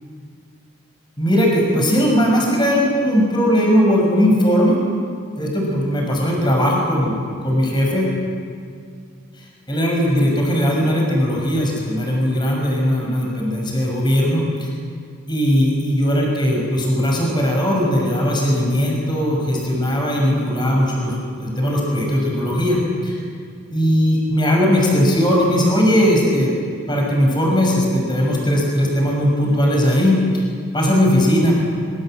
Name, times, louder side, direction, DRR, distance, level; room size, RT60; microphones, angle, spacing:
voice 1, 1.2-4.8 5.4-8.1 9.7-14.7 15.3-23.2 23.7-26.6 26.9-30.2 30.7-31.5, equal, 20° left, -1 dB, 6.1 m, -18 dB
25.5 x 24.0 x 7.8 m, 2.2 s
head